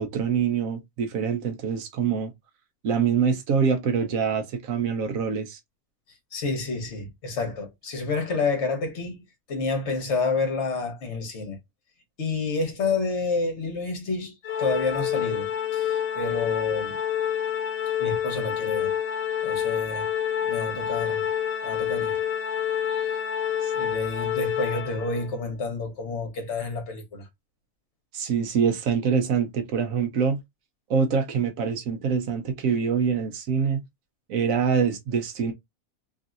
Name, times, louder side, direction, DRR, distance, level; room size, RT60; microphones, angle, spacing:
voice 1, 0.0-2.3 2.8-5.6 23.6-23.7 28.1-30.4 30.9-33.8 34.3-35.5, right 6 dB, 75° right, 1.1 m, -25 dB
voice 2, 6.3-9.2 9.5-11.6 12.2-15.5 15.7-17.0 18.0-18.9 19.4-20.1 20.5-21.2 21.6-22.2 22.9-23.2 23.7-27.2, left 3 dB, 55° left, 1.2 m, -29 dB
Organ, 14.4-25.3, left 9 dB, 80° left, 1.1 m, -28 dB
3.1 x 2.7 x 2.4 m
omnidirectional pair, 1.5 m